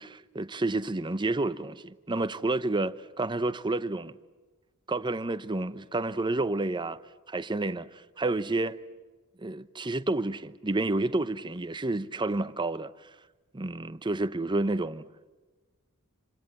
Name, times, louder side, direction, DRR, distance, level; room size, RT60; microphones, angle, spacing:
voice 1, 0.0-4.2 4.9-7.0 7.3-8.8 9.4-12.9 13.5-15.0, right 2 dB, 20° right, 0.8 m, -30 dB
27.5 x 26.5 x 7.7 m
head